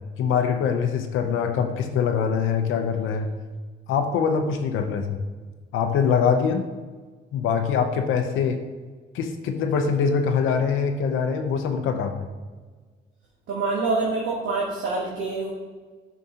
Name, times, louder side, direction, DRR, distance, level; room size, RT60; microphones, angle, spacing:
voice 1, 0.2-3.3 3.9-5.2 5.7-6.7 7.3-8.6 9.1-12.2, left 6 dB, 85° left, 5 dB, 0.7 m, -23 dB
voice 2, 13.5-15.5, right 3 dB, 75° right, -3 dB, 1.2 m, -26 dB
7.4 x 5.5 x 2.8 m, 1.4 s
cardioid pair, 90°, 20 cm